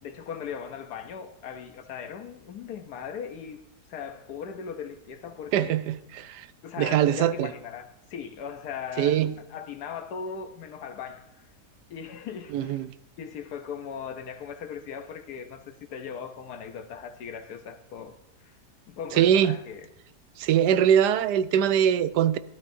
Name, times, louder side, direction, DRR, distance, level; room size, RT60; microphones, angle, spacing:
voice 1, 0.0-3.6 3.9-5.8 6.6-9.2 9.5-11.5 11.9-12.8 13.2-18.6 18.9-19.9, left 7 dB, 75° left, 1.2 m, -39 dB
voice 2, 5.5-6.5 6.8-7.5 9.0-9.3 12.5-12.9 19.1-19.6 20.4-22.4, right 9 dB, 85° right, 1.2 m, -22 dB
13.0 x 12.0 x 2.6 m
omnidirectional pair, 1.7 m